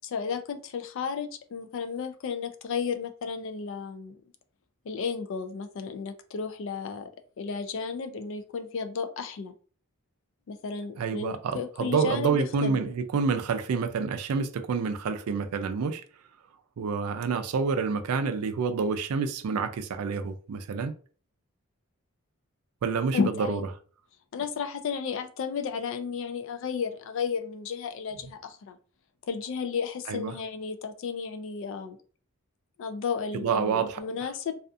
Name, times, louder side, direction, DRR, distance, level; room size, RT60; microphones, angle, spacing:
voice 1, 0.0-4.2 4.8-7.1 7.4-9.5 10.5-12.9 23.1-23.6 24.3-28.8 29.2-32.0 32.8-34.5, left 6 dB, 60° left, 0.3 m, -33 dB
voice 2, 11.0-16.0 16.8-20.9 22.8-23.2 23.5-23.6 30.1-30.3 33.3-34.0, right 5 dB, 85° right, 0.4 m, -28 dB
2.4 x 2.3 x 2.5 m
head